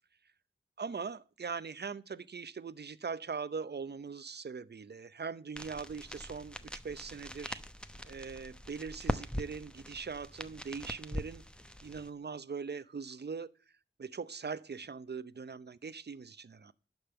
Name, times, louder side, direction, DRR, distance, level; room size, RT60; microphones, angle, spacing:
voice 1, 0.8-7.6 8.0-11.4 11.8-13.5 14.0-16.7, right 5 dB, 50° right, 0.7 m, -41 dB
sound 1, 5.6-12.1, equal, 5° left, 0.9 m, -42 dB
11.5 x 5.4 x 7.8 m
cardioid pair, 50°, 21 cm